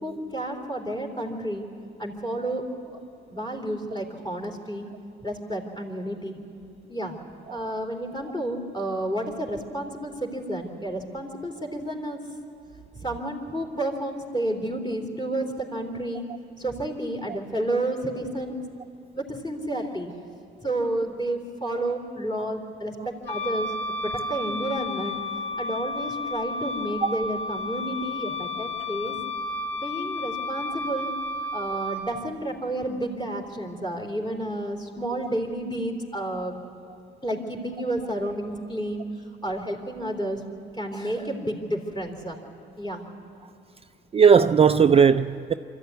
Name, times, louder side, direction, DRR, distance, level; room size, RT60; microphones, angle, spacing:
voice 1, 0.0-1.6 2.0-3.0 3.3-4.9 5.2-6.4 6.9-7.1 7.5-12.2 12.9-15.4 15.7-16.2 16.6-18.6 19.2-20.1 20.6-23.7 24.3-25.1 25.6-29.1 29.7-31.1 31.5-36.5 37.2-39.0 39.4-40.4 40.7-42.4 42.8-43.0, right 1 dB, 20° left, 3.4 m, -31 dB
Wind instrument woodwind instrument, 23.2-32.0, left 2 dB, 70° left, 2.2 m, -32 dB
voice 2, 44.1-45.5, right 6 dB, 30° right, 0.4 m, -18 dB
24.5 x 14.0 x 9.4 m
cardioid pair, 90°, 20 cm